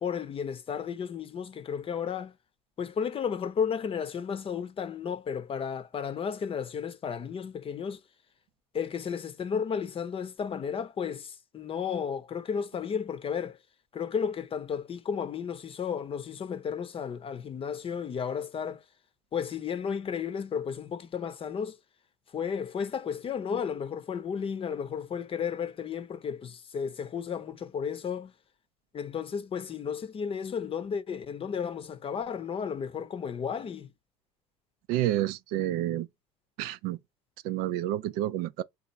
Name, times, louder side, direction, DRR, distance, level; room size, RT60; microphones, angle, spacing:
voice 1, 0.0-2.3 2.8-8.0 8.7-13.6 13.9-18.8 19.3-21.8 22.3-28.3 28.9-33.9, left 7 dB, 35° left, 0.7 m, -33 dB
voice 2, 34.9-36.1 36.6-37.0 37.4-38.6, right 13 dB, 70° right, 0.5 m, -29 dB
4.1 x 2.5 x 4.1 m
hypercardioid pair, 75°, 16 cm